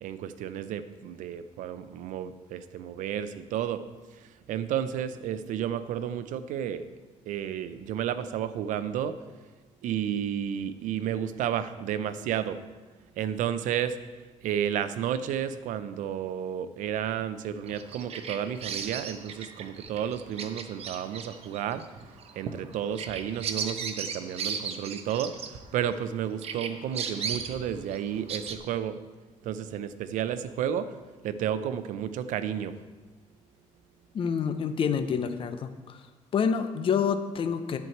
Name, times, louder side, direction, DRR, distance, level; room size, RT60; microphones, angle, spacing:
voice 1, 0.0-3.8 4.2-6.9 7.3-9.2 9.8-12.6 13.2-14.0 14.4-21.8 22.4-29.0 29.4-30.9 31.2-32.7, right 9 dB, 85° right, 12 dB, 0.6 m, -32 dB
Bird vocalization bird call bird song, 17.7-26.1 26.4-28.6, right 6 dB, 50° right, 0.9 m, -36 dB
voice 2, 34.1-36.0 36.3-37.8, left 6 dB, 45° left, 8 dB, 0.7 m, -27 dB
11.0 x 4.6 x 7.8 m, 1.3 s
cardioid pair, 140°, 13 cm